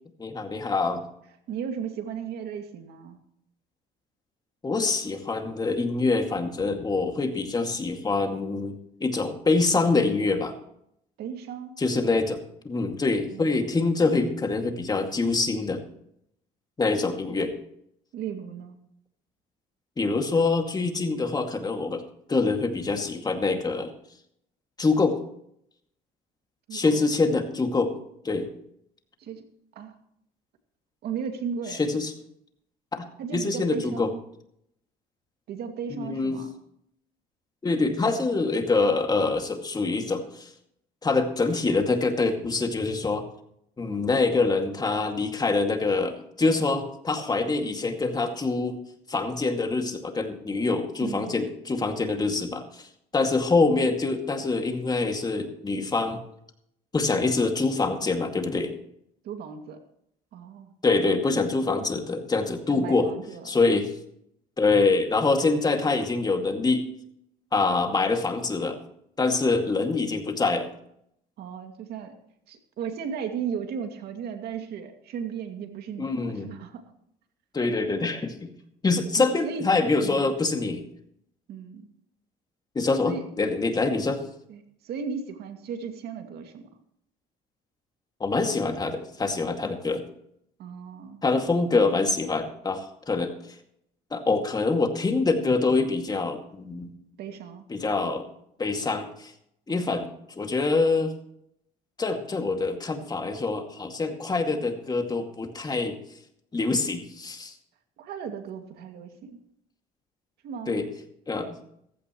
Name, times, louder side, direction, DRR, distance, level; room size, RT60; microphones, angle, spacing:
voice 1, 0.2-1.0 4.6-8.7 9.0-10.5 11.8-12.4 12.6-15.8 16.8-17.5 20.0-22.0 22.3-23.9 24.8-25.2 26.7-27.9 28.2-28.5 31.7-32.1 32.9-34.1 36.0-36.4 37.6-40.5 41.0-43.2 43.8-48.8 49.1-52.6 53.1-56.2 56.9-58.7 60.8-63.1 63.4-63.9 64.6-66.8 67.5-68.8 69.2-70.7 76.0-76.5 77.5-78.5 78.8-80.8 82.8-84.2 88.2-90.1 91.2-93.3 94.1-96.9 97.7-98.3 98.6-99.3 99.7-100.1 100.4-101.1 102.0-106.0 106.5-107.5 110.7-110.9 111.3-111.5, left 3 dB, 25° left, 5 dB, 2.2 m, -25 dB
voice 2, 1.5-3.2 11.2-11.8 13.3-13.5 18.1-18.8 26.7-27.0 29.2-29.5 29.7-30.0 31.0-31.8 33.2-34.2 35.5-36.6 51.0-51.5 59.2-59.8 60.3-60.7 62.7-63.8 71.4-72.2 72.5-76.8 77.8-78.1 79.2-79.7 80.0-80.3 81.5-81.9 83.0-83.3 84.5-86.8 90.6-91.2 97.2-97.7 99.7-99.9 108.0-109.4 110.4-110.8, right 7 dB, 70° right, 6 dB, 2.3 m, -36 dB
15.5 x 15.0 x 3.1 m, 0.72 s
cardioid pair, 110°, 17 cm